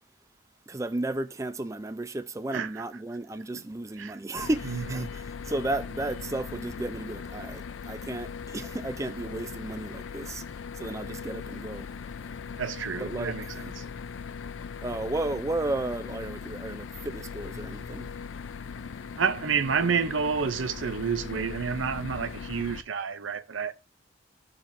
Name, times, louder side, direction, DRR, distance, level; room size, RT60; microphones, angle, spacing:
voice 1, 0.7-10.4 10.7-11.9 13.0-13.3 14.8-18.1, right 2 dB, 15° right, 0.4 m, -33 dB
voice 2, 2.5-2.8 3.5-3.6 4.0-4.2 4.6-5.1 12.6-13.8 19.2-23.7, right 6 dB, 85° right, 0.6 m, -29 dB
sound 1, 4.4-22.8, left 6 dB, 80° left, 0.5 m, -39 dB
13.5 x 4.6 x 2.6 m
head